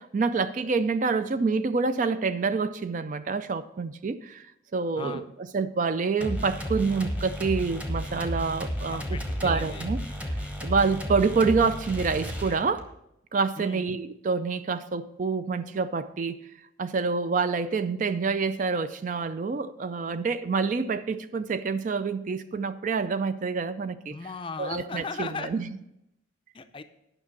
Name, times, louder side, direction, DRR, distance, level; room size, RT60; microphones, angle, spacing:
voice 1, 0.0-9.0 9.4-10.0 10.3-12.8 13.3-16.4 16.8-24.2 24.6-25.8, right 4 dB, 40° right, 0.3 m, -27 dB
sound 1, 6.2-12.9, equal, 5° right, 0.9 m, -33 dB
voice 2, 8.9-9.9 13.6-13.8 24.1-25.5 26.5-26.8, left 4 dB, 25° left, 0.5 m, -37 dB
9.9 x 5.8 x 5.9 m
head